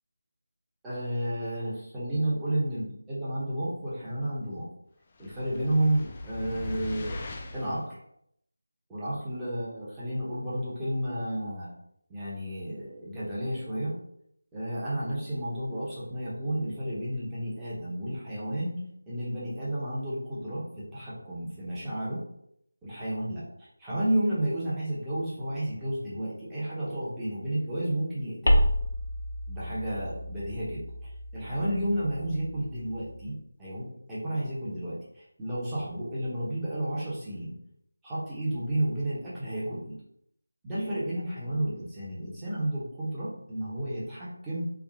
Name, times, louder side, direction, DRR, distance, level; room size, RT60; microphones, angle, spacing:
voice 1, 0.8-4.7 5.2-7.1 7.5-8.0 8.9-11.7 12.1-13.9 14.5-18.8 19.1-22.2 22.8-28.7 29.5-30.9 31.3-37.6 38.0-39.9 40.6-44.7, right 1 dB, 5° right, -10 dB, 0.9 m, -32 dB
sound 1, 5.2-7.8, left 2 dB, 25° left, 0.4 m, -39 dB
sound 2, 28.5-33.3, equal, 65° left, 0.7 m, -30 dB
3.5 x 2.3 x 3.5 m, 0.73 s
figure-of-eight pair, 170°, 0 cm